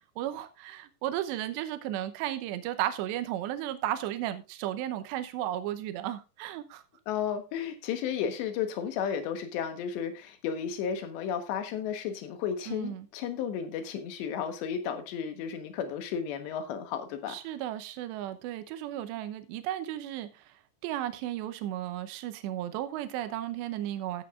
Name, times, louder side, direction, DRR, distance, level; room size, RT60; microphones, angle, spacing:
voice 1, 0.2-6.8 12.7-13.1 17.3-20.3 20.8-24.2, right 12 dB, 80° right, 3.0 m, -34 dB
voice 2, 7.1-17.4, left 8 dB, 75° left, 3.5 m, -33 dB
15.5 x 8.3 x 2.5 m
omnidirectional pair, 5.2 m